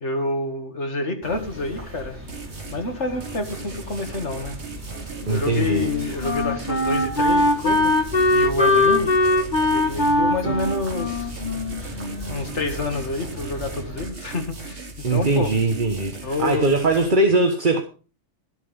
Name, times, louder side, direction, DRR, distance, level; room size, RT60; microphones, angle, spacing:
voice 1, 0.0-2.2 2.7-4.5 5.3-7.9 8.3-9.1 9.7-11.4 12.3-15.5 16.2-16.7, left 2 dB, 80° left, 2.3 m, -28 dB
sound 1, 1.2-14.0, equal, 10° right, 5.1 m, -38 dB
sound 2, 2.3-2.8 3.2-10.2 10.6-17.1, right 4 dB, 70° right, 2.3 m, -38 dB
Wind instrument woodwind instrument, 5.2-12.5, left 1 dB, 45° left, 1.9 m, -21 dB
voice 2, 5.3-5.9 15.0-17.8, right 3 dB, 45° right, 1.4 m, -21 dB
13.0 x 8.0 x 5.2 m
omnidirectional pair, 1.2 m